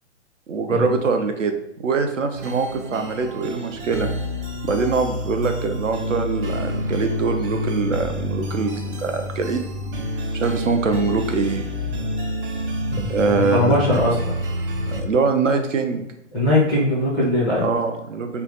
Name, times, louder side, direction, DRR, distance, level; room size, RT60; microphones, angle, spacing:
voice 1, 0.5-1.5 1.8-4.1 4.6-9.6 10.3-11.7 13.1-13.8 14.9-16.0 17.6-18.4, right 4 dB, 75° right, 6 dB, 0.7 m, -23 dB
sound 1, 2.3-15.0, left 1 dB, 45° right, 0.7 m, -28 dB
voice 2, 12.9-14.3 16.3-17.7, left 1 dB, ahead, -9 dB, 0.3 m, -20 dB
3.4 x 2.2 x 3.9 m, 0.85 s
figure-of-eight pair, 125°, 38 cm